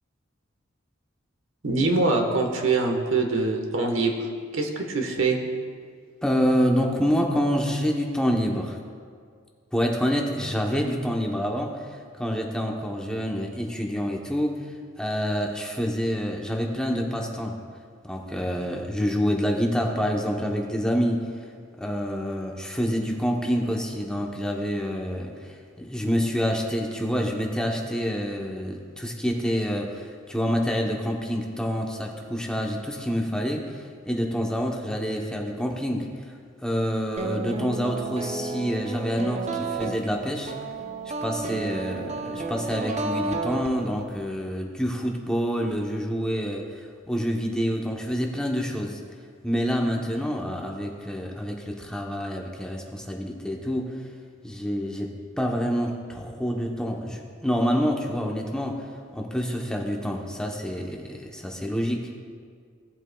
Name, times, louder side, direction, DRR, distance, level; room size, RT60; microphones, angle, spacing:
voice 1, 1.6-4.1 4.5-5.4, right 3 dB, 70° right, 3 dB, 1.2 m, -23 dB
voice 2, 6.2-8.8 9.7-17.6 18.0-21.2 21.8-40.5 41.2-49.0 49.4-54.1 54.4-58.8 59.1-62.1, equal, 5° left, 0 dB, 0.8 m, -27 dB
sound 1, 37.2-44.3, right 3 dB, 35° right, 0.5 m, -32 dB
17.0 x 8.0 x 2.2 m, 2.1 s
head